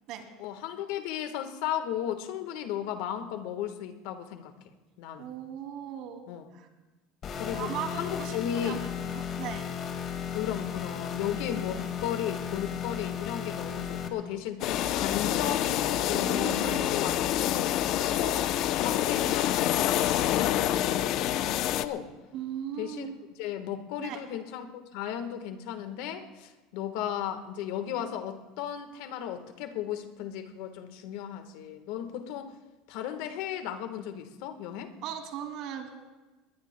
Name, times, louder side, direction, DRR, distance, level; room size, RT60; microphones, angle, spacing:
voice 1, 0.4-4.5 5.0-5.3 6.3-6.5 7.4-8.8 10.3-17.7 18.1-18.4 18.8-22.1 22.8-23.1 23.4-32.5 32.9-34.9, left 10 dB, 70° left, 8 dB, 1.3 m, -35 dB
voice 2, 5.2-6.3 6.5-6.7 7.5-9.6 16.1-16.8 22.3-23.1 24.0-24.2 35.0-35.9, right 9 dB, 60° right, 4 dB, 2.5 m, -38 dB
sound 1, 7.2-14.1, left 8 dB, 40° left, 1.9 m, -35 dB
sound 2, 14.6-21.9, left 12 dB, 55° left, 0.6 m, -27 dB
20.5 x 20.0 x 2.2 m, 1.2 s
supercardioid pair, 110°, 0 cm